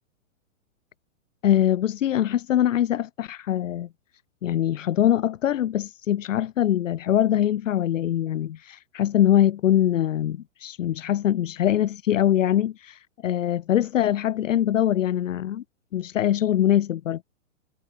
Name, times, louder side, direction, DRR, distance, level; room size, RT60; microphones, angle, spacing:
voice 1, 1.4-3.9 4.4-15.6 15.9-17.2, left 11 dB, 70° left, 1.7 m, -23 dB
hypercardioid pair, 145°, 40 cm